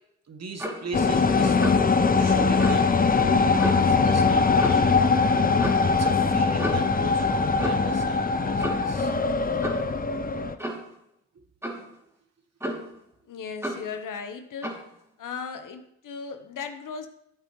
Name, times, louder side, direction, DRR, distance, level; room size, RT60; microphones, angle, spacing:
voice 1, 0.3-5.1 5.8-9.1 10.6-10.8 11.3-11.4, right 4 dB, 45° right, 6 dB, 1.6 m, -38 dB
Clock, 0.6-0.9 1.6-1.9 2.6-2.8 3.6-3.9 4.6-4.9 5.6-5.8 6.6-6.9 7.6-7.9 8.6-8.9 9.6-9.9 10.6-10.9 11.6-11.9 12.6-13.0 13.6-13.9 14.6-14.9, equal, 5° right, 3.0 m, -32 dB
sound 1, 0.9-10.5, left 4 dB, 25° left, 0.8 m, -22 dB
voice 2, 13.3-14.8 15.2-17.1, left 6 dB, 60° left, 8 dB, 1.2 m, -36 dB
12.5 x 7.8 x 3.2 m, 0.77 s
supercardioid pair, 50°, 35 cm